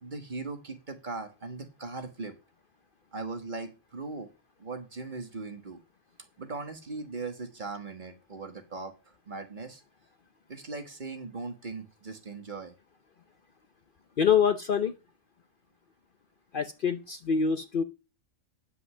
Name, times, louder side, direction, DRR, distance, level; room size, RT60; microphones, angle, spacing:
voice 1, 0.0-2.3 3.1-4.3 4.6-5.8 6.4-9.8 10.5-12.7, right 3 dB, 40° right, 6 dB, 1.5 m, -39 dB
voice 2, 14.2-14.9 16.5-17.8, left 7 dB, 50° left, 9 dB, 0.8 m, -25 dB
9.9 x 5.4 x 6.5 m, 0.31 s
omnidirectional pair, 1.3 m